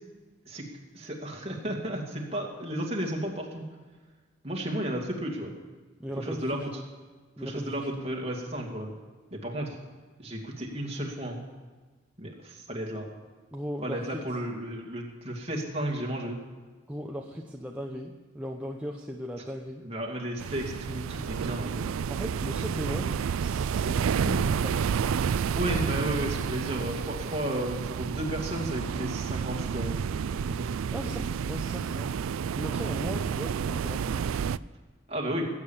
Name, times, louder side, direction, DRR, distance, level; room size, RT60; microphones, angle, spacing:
voice 1, 0.9-3.6 4.4-5.5 6.2-6.7 7.4-8.9 9.3-9.8 10.2-11.4 12.2-13.1 13.8-16.4 19.8-21.9 25.5-30.0 30.3-30.6 35.1-35.4, right 1 dB, 30° right, -1 dB, 2.4 m, -33 dB
voice 2, 6.0-6.8 7.4-8.0 13.5-14.2 16.9-19.8 22.1-25.0 30.9-32.1 32.6-34.1, equal, 5° right, 0 dB, 0.8 m, -37 dB
sound 1, 20.4-34.6, right 7 dB, 90° right, 0.4 m, -30 dB
19.5 x 8.8 x 7.3 m, 1.3 s
head